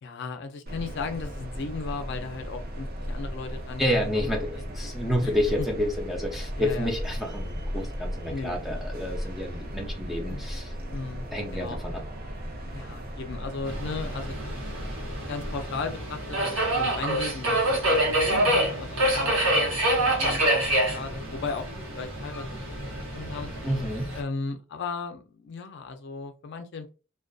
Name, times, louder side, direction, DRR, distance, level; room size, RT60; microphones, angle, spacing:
voice 1, 0.0-4.4 4.8-4.9 5.2-5.3 5.6-5.7 6.6-6.9 8.3-8.8 10.3-10.5 10.9-11.3 11.5-11.8 12.7-14.4 15.3-21.7 21.9-23.5 24.1-27.0, left 4 dB, 60° left, 7 dB, 0.4 m, -36 dB
sound 1, 0.7-15.7, equal, 50° right, 0.6 m, -36 dB
voice 2, 3.8-10.7 11.3-12.0 23.6-24.1, equal, ahead, 0 dB, 0.5 m, -29 dB
Subway metro underground, 13.7-24.2, right 1 dB, 80° right, 0.9 m, -27 dB
2.4 x 2.2 x 2.3 m, 0.32 s
head